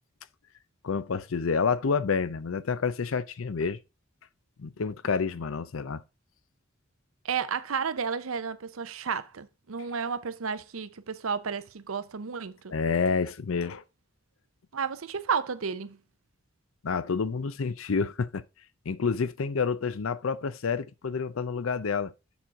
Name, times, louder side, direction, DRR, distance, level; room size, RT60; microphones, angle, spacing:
voice 1, 0.8-3.8 4.6-6.0 12.7-13.8 16.8-18.4 18.9-22.1, left 5 dB, 75° left, 0.6 m, -28 dB
voice 2, 7.2-12.7 14.7-16.0, right 6 dB, 90° right, 0.7 m, -32 dB
7.2 x 6.2 x 3.7 m
head